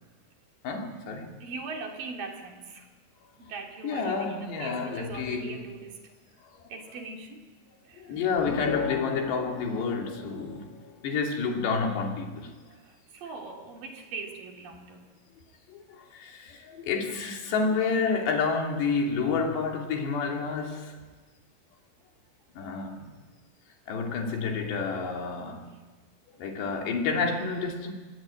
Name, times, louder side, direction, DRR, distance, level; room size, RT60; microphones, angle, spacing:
voice 1, 0.6-1.4 3.8-5.7 8.0-10.7 11.0-12.5 15.7-20.9 22.5-23.1 23.9-25.7 26.4-27.9, left 4 dB, 65° left, 4.9 m, -29 dB
voice 2, 1.4-2.9 3.4-6.0 6.6-7.4 7.9-8.2 12.8-15.1, right 4 dB, 50° right, 4.2 m, -41 dB
sound 1, 8.4-11.1, left 7 dB, 85° left, 3.7 m, -35 dB
26.0 x 21.0 x 8.9 m
omnidirectional pair, 5.3 m